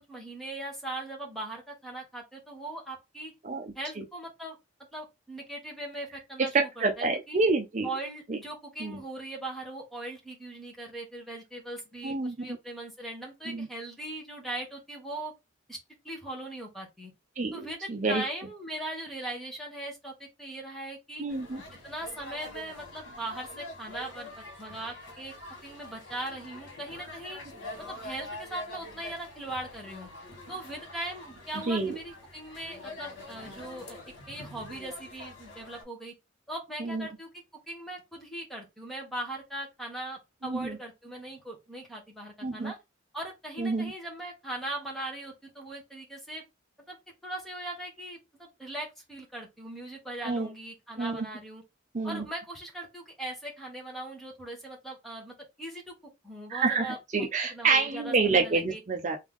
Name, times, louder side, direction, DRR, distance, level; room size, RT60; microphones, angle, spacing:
voice 1, 0.1-3.3 3.7-4.6 4.9-7.4 7.8-15.3 15.7-15.8 16.0-17.1 17.5-21.3 21.8-25.3 25.6-27.4 27.9-30.1 30.5-34.0 34.3-36.1 36.5-37.3 37.7-42.8 43.1-46.4 46.9-47.0 47.2-51.6 52.0-55.9 56.2-58.8, right 1 dB, ahead, 1.4 m, -39 dB
voice 2, 6.4-7.9 8.3-8.4 8.8-9.0 12.0-12.6 13.5-13.7 17.4-17.5 17.9-18.2 21.2-21.6 31.7-32.0 36.8-37.0 40.4-40.8 42.4-42.7 43.6-43.9 50.2-50.5 51.0-51.2 51.9-52.2 56.5-59.2, right 4 dB, 40° right, 0.6 m, -28 dB
sound 1, 21.3-35.8, left 2 dB, 70° left, 2.3 m, -45 dB
3.5 x 3.3 x 3.7 m
head